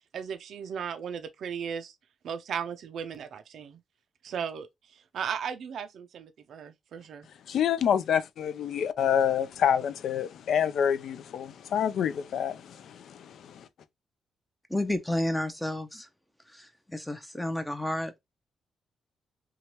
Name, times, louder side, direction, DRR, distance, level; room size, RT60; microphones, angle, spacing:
voice 1, 0.1-1.9 2.2-3.8 4.2-7.3, right 7 dB, 70° right, 0.4 m, -36 dB
voice 2, 7.5-13.6, left 8 dB, 75° left, 0.3 m, -27 dB
voice 3, 14.7-16.1 16.5-18.2, left 1 dB, 5° left, 0.5 m, -31 dB
2.8 x 2.2 x 2.9 m
cardioid pair, 75°, 0 cm